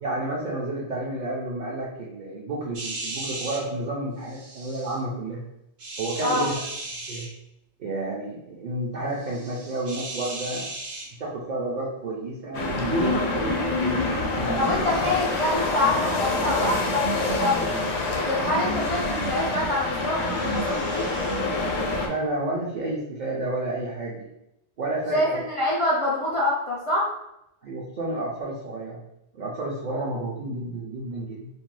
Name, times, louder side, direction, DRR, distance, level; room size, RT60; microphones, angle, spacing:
voice 1, 0.0-5.4 6.0-6.5 7.1-7.3 7.8-10.6 11.2-14.9 22.1-24.3 24.8-25.4 27.6-29.0 29.3-31.5, right 2 dB, 55° right, -4 dB, 0.5 m, -30 dB
sound 1, 2.7-3.6 4.2-5.0 5.8-7.3 9.1-11.1 20.1-21.4, right 2 dB, 80° right, 1.0 m, -36 dB
sound 2, 12.5-22.1, left 2 dB, 75° left, 0.8 m, -26 dB
voice 2, 14.6-17.6 18.1-21.1 25.1-27.1, left 1 dB, 60° left, -6 dB, 0.3 m, -26 dB
2.5 x 2.1 x 3.1 m, 0.82 s
omnidirectional pair, 1.1 m